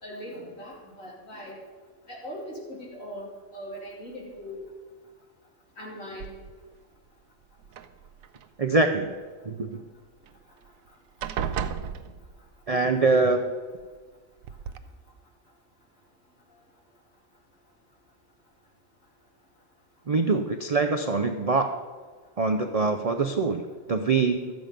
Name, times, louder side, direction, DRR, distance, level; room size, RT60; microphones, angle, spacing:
voice 1, 0.0-1.6 2.1-4.6 5.8-6.3, equal, 70° left, -4 dB, 3.3 m, -40 dB
sound 1, 6.2-6.8 7.6-8.5 10.3-10.4 10.7-10.9 11.2-12.6 13.8-13.9 14.4-14.8, right 8 dB, 80° right, 1.0 m, -34 dB
voice 2, 8.6-9.1 9.4-9.8 12.7-13.5 20.1-21.8 22.4-23.6 23.9-24.5, right 3 dB, 50° right, 6 dB, 0.4 m, -24 dB
12.5 x 7.9 x 5.2 m, 1.4 s
omnidirectional pair, 1.4 m